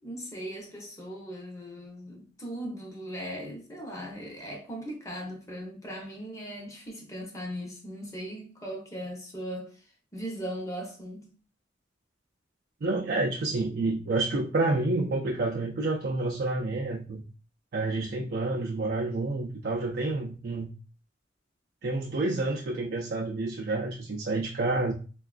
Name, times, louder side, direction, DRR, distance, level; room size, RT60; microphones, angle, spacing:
voice 1, 0.0-11.3, equal, 15° left, 0.8 m, -39 dB
voice 2, 12.8-17.2 17.7-20.7 21.8-24.9, right 2 dB, 55° right, 0.4 m, -29 dB
4.5 x 2.3 x 2.4 m
head